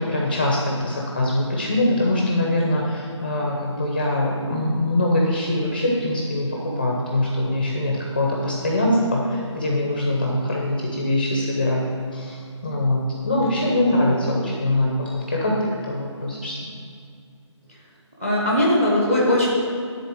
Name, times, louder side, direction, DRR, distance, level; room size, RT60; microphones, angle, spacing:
voice 1, 0.0-11.8 12.1-16.6, left 1 dB, 20° left, -2 dB, 0.7 m, -23 dB
voice 2, 18.2-19.5, left 1 dB, 5° right, -5 dB, 0.9 m, -19 dB
10.0 x 4.2 x 7.7 m, 2.3 s
figure-of-eight pair, 175°, 16 cm